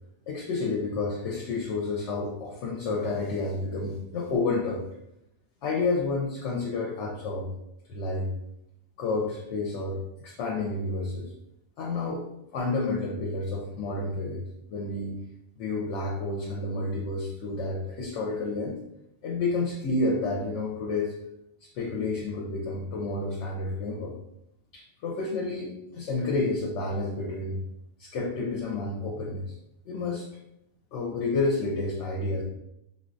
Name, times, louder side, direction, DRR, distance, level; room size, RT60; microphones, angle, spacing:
voice 1, 0.3-4.8 5.6-7.5 7.9-8.3 9.0-11.3 11.8-12.3 12.5-14.4 14.7-15.2 15.6-18.8 19.2-21.1 21.7-24.1 24.7-27.6 28.0-29.5 29.9-30.3 30.9-32.4, left 3 dB, 80° left, -2 dB, 0.9 m, -30 dB
3.8 x 2.2 x 2.5 m, 0.80 s
omnidirectional pair, 1.2 m